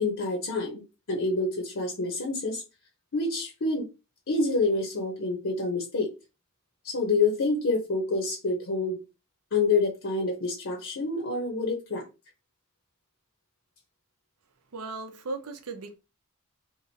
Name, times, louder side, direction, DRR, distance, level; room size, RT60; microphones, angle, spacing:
voice 1, 0.0-2.6 3.1-3.9 4.3-6.1 6.8-9.0 9.5-12.1, left 3 dB, 60° left, 0.8 m, -27 dB
voice 2, 14.7-15.9, right 3 dB, 80° right, 0.7 m, -36 dB
3.0 x 2.5 x 3.9 m
head